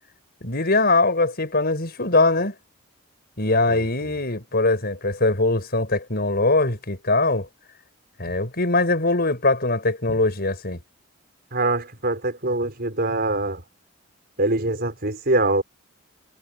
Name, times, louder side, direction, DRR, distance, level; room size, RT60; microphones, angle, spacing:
voice 1, 0.4-2.5 3.4-7.5 8.2-10.8, left 2 dB, 45° left, 5.9 m, -21 dB
voice 2, 3.7-4.1 11.5-13.6 14.4-15.6, right 2 dB, 45° right, 5.4 m, -24 dB
head